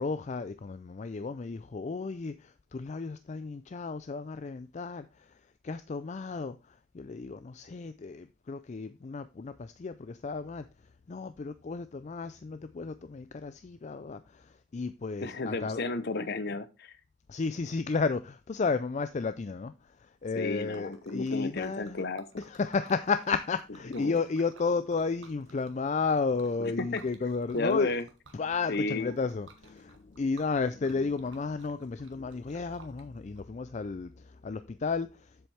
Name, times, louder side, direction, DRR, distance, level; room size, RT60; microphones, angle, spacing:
voice 1, 0.0-5.3 5.6-10.7 11.1-15.8 17.3-22.0 22.5-27.9 28.3-35.5, left 4 dB, 35° left, 0.4 m, -33 dB
voice 2, 15.2-17.0 20.3-22.3 23.9-24.2 26.6-27.0 27.5-28.1 28.7-29.1, left 3 dB, 50° left, 0.8 m, -33 dB
Liquid, 20.2-33.4, right 3 dB, 65° right, 1.4 m, -57 dB
7.8 x 7.1 x 3.3 m
head